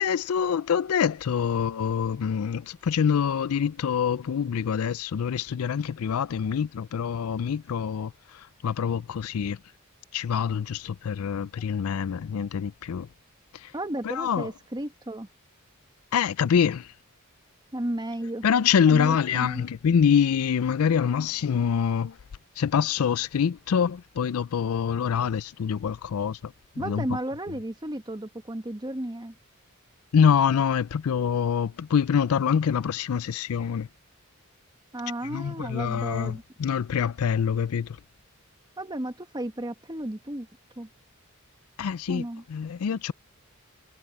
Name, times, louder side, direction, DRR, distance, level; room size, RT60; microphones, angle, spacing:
voice 1, 0.0-8.1 8.6-9.6 10.1-13.1 13.6-13.7 14.0-14.5 16.1-16.9 18.4-22.1 22.6-27.0 30.1-33.9 35.3-38.0 41.8-42.2 42.5-43.1, left 7 dB, 85° left, 0.4 m, -25 dB
voice 2, 13.7-15.3 17.7-18.4 18.9-19.6 26.8-29.3 34.9-36.4 38.8-40.5 40.8-40.9 42.1-42.4, right 1 dB, 20° right, 1.3 m, -33 dB
head